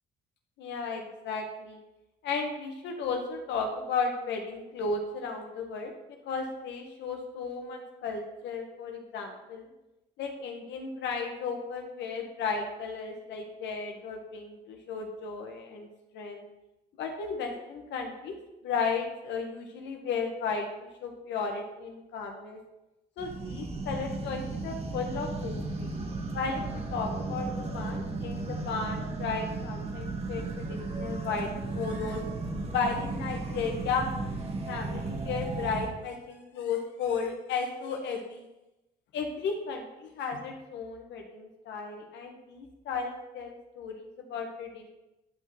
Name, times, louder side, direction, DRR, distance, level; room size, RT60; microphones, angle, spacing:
voice 1, 0.6-1.8 2.2-9.7 10.2-15.9 16.1-16.4 17.0-18.4 18.6-22.6 23.2-25.9 26.3-27.5 27.7-32.2 32.7-34.1 34.6-38.5 39.1-44.9, left 5 dB, 80° left, 3 dB, 1.4 m, -34 dB
sound 1, 23.2-35.9, right 3 dB, 35° right, 1.7 m, -35 dB
10.0 x 5.3 x 4.2 m, 0.96 s
cardioid pair, 85°, 18 cm